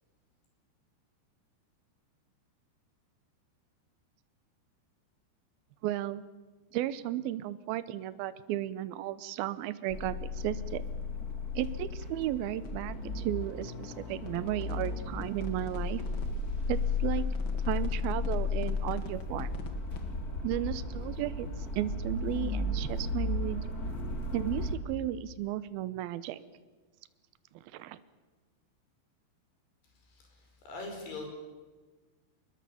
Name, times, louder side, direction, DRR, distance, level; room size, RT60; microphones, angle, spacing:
voice 1, 5.8-6.2 6.7-10.8 11.5-16.0 16.7-17.3 17.7-19.5 20.4-21.5 21.7-23.6 24.3-26.4 27.6-28.0, right 13 dB, 75° right, 14 dB, 2.6 m, -34 dB
sound 1, 9.9-24.7, left 3 dB, 25° left, 2.4 m, -34 dB
sound 2, 12.6-20.0, left 5 dB, 50° left, 1.5 m, -48 dB
voice 2, 30.0-31.3, left 2 dB, 75° left, 3 dB, 7.1 m, -42 dB
24.5 x 21.0 x 7.1 m, 1.3 s
omnidirectional pair, 4.7 m